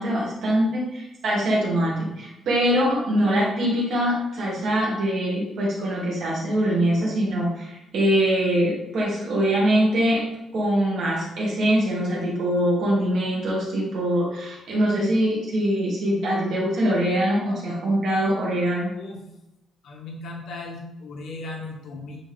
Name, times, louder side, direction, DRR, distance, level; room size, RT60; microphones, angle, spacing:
voice 1, 0.0-10.2 10.5-18.9, equal, 55° right, -5 dB, 2.0 m, -23 dB
voice 2, 19.8-22.2, left 2 dB, 65° left, 0 dB, 1.2 m, -37 dB
9.9 x 3.6 x 3.6 m, 0.92 s
cardioid pair, 175°, 0 cm